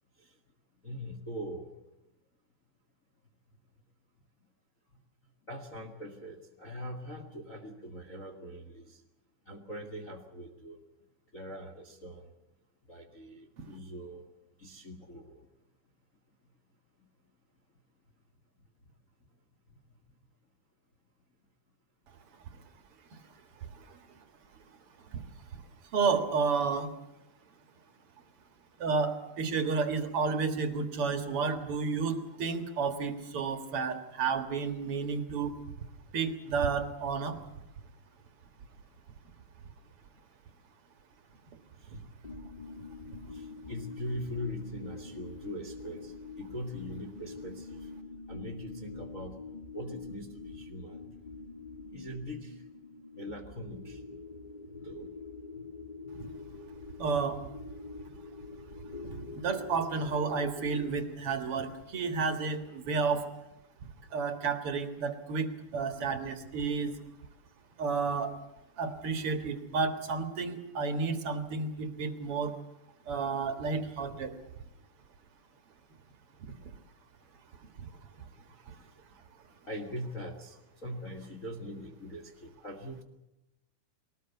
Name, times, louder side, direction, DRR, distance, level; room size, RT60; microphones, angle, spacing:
voice 1, 0.8-1.7 5.5-9.0 9.5-10.8 11.3-12.3 12.9-14.3 14.6-15.4 41.8-42.0 43.3-47.9 48.3-49.4 49.7-51.0 51.9-52.6 53.1-54.0 54.7-55.1 79.7-83.0, equal, 35° left, 3 dB, 1.4 m, -42 dB
voice 2, 25.9-26.9 28.8-35.5 36.1-37.4 57.0-57.4 59.3-63.2 64.1-66.9 67.8-68.3 68.8-72.5 73.1-74.3, right 5 dB, 50° right, 7 dB, 1.9 m, -31 dB
sound 1, 42.2-60.9, left 4 dB, 85° left, 0.4 m, -45 dB
22.5 x 19.0 x 8.2 m, 0.92 s
omnidirectional pair, 4.4 m